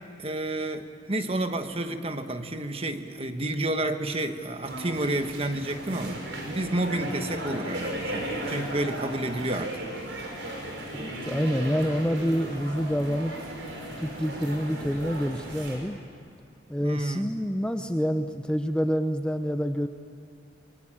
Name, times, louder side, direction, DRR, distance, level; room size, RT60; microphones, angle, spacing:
voice 1, 0.2-9.8 16.8-17.3, right 1 dB, 30° right, 8 dB, 1.3 m, -30 dB
sound 1, 4.6-15.8, right 1 dB, 70° right, 5.7 m, -36 dB
voice 2, 10.9-13.3 14.0-16.0 16.7-19.9, equal, 5° left, 7 dB, 0.6 m, -27 dB
24.5 x 22.5 x 8.8 m, 2.6 s
head